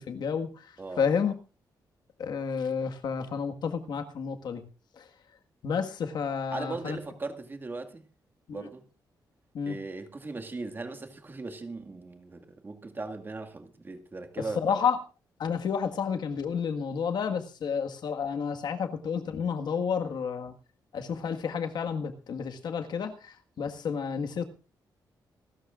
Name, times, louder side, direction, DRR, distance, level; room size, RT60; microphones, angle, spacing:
voice 1, 0.0-1.3 2.2-4.6 5.0-5.1 5.6-7.0 8.5-8.7 9.5-9.8 14.5-15.0 15.4-20.5 20.9-24.4, left 6 dB, 70° left, 1.7 m, -30 dB
voice 2, 6.5-8.0 8.5-8.8 9.7-14.8, right 3 dB, 25° right, 2.0 m, -38 dB
27.0 x 13.0 x 2.5 m
wide cardioid pair, 135°, 8 cm